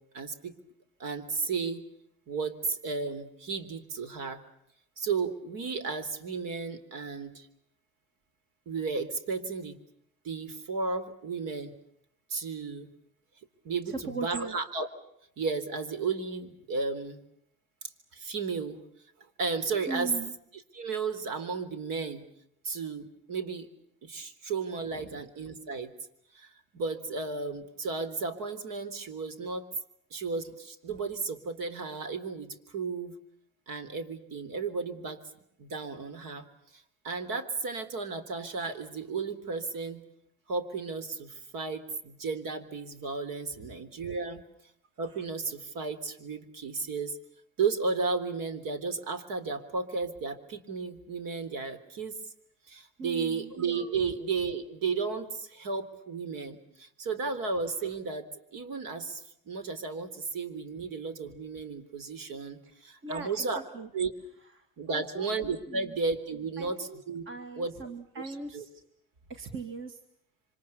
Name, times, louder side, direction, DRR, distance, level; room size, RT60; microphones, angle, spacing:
voice 1, 0.1-0.5 1.0-1.8 2.3-4.4 5.0-7.5 8.7-9.8 10.2-11.7 12.3-12.9 13.6-14.9 15.4-17.2 18.1-18.8 19.4-20.1 20.7-22.3 22.6-23.7 24.0-25.9 26.3-29.6 30.1-33.1 33.7-35.2 35.6-36.5 36.7-40.0 40.5-44.4 45.0-47.2 47.6-52.2 52.7-63.6 63.9-64.1 64.8-67.2 67.6-67.7 68.2-68.7, right 4 dB, 55° right, 11 dB, 3.7 m, -34 dB
voice 2, 13.9-14.6 19.9-20.3 24.9-25.1 43.6-43.7 53.0-53.5 63.0-63.5 63.7-63.9 64.6-65.3 65.7-65.9 66.6-68.7 69.3-70.0, right 4 dB, 30° right, 7 dB, 2.0 m, -39 dB
27.5 x 25.5 x 7.0 m, 0.73 s
cardioid pair, 130°, 40 cm